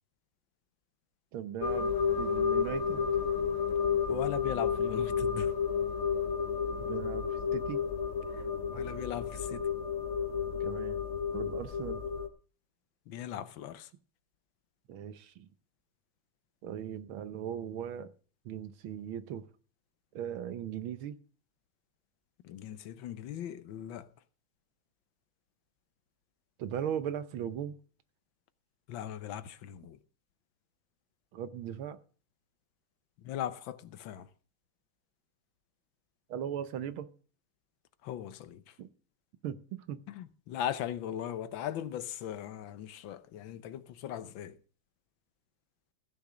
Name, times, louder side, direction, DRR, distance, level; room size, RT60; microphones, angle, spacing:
voice 1, 1.3-3.1 6.8-7.3 7.5-7.8 10.6-11.0 11.3-12.0 14.9-15.5 16.6-18.1 18.4-19.4 20.1-21.1 26.6-27.7 31.3-32.0 36.3-37.1 38.8-38.9 39.4-40.0, right 9 dB, 85° right, 1.8 m, -38 dB
sound 1, 1.6-12.3, left 6 dB, 45° left, 1.2 m, -31 dB
voice 2, 4.1-5.5 8.3-9.7 13.1-13.9 22.4-24.1 28.9-30.0 33.2-34.3 38.0-38.8 40.1-44.6, left 10 dB, 75° left, 1.5 m, -39 dB
15.5 x 6.7 x 6.2 m
omnidirectional pair, 2.2 m